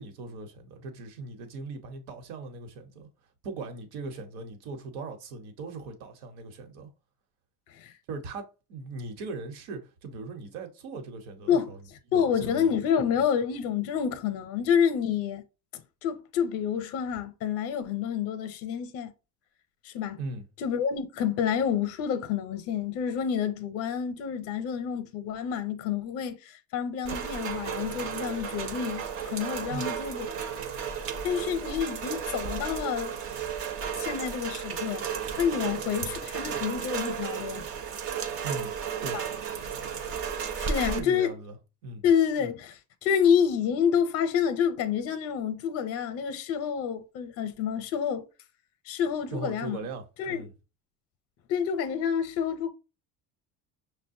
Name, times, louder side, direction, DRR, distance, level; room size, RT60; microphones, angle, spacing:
voice 1, 0.0-3.1 3.4-6.9 8.1-11.8 12.1-12.7 20.2-20.5 29.7-29.9 38.4-38.7 39.0-39.2 40.9-41.6 41.8-42.0 49.3-50.5, right 3 dB, 90° right, 1.0 m, -39 dB
voice 2, 11.5-15.4 16.0-19.1 19.8-20.2 20.6-30.3 31.2-33.1 34.0-35.0 35.4-37.6 39.1-39.2 40.6-41.3 42.0-48.3 48.9-49.8 50.2-50.4 51.5-52.7, left 8 dB, 40° left, 0.5 m, -28 dB
Rain, 27.0-41.0, right 7 dB, 40° right, 0.4 m, -34 dB
6.1 x 2.1 x 2.6 m
cardioid pair, 170°, 37 cm